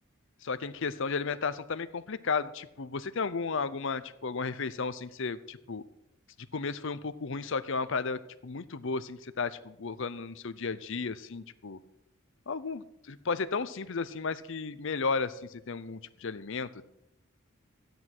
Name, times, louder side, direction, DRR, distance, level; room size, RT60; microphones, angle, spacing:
voice 1, 0.4-5.8 6.5-11.8 12.5-16.8, left 4 dB, 60° left, 14 dB, 0.7 m, -34 dB
13.5 x 9.5 x 6.1 m, 0.88 s
head